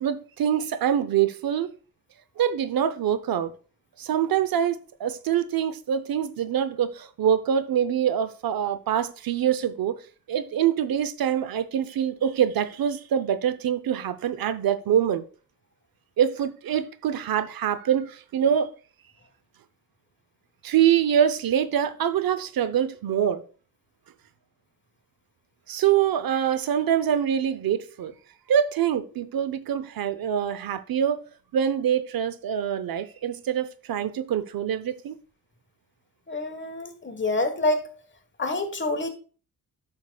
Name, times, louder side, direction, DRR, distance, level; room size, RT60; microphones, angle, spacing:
voice 1, 0.0-1.7 2.4-3.5 4.0-10.0 10.3-15.2 16.2-18.7 20.6-23.4 25.7-28.1 28.5-31.2 31.5-35.2, right 9 dB, 75° right, 0.6 m, -25 dB
voice 2, 36.3-37.9 38.4-39.1, left 2 dB, 30° left, 1.4 m, -27 dB
9.5 x 6.6 x 2.3 m
cardioid pair, 85°, 36 cm